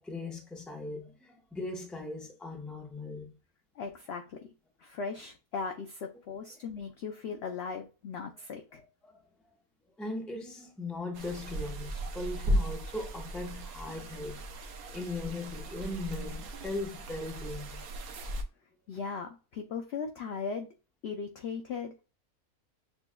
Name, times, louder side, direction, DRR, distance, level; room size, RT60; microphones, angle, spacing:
voice 1, 0.0-3.3 6.5-6.6 8.7-9.2 10.0-14.5 14.9-17.8, left 2 dB, ahead, 0.6 m, -39 dB
voice 2, 3.8-4.5 4.8-8.8 18.9-20.7 21.0-21.9, left 5 dB, 65° left, 0.6 m, -38 dB
sound 1, 11.1-18.4, equal, 75° right, 1.1 m, -36 dB
6.7 x 2.3 x 2.2 m
omnidirectional pair, 1.6 m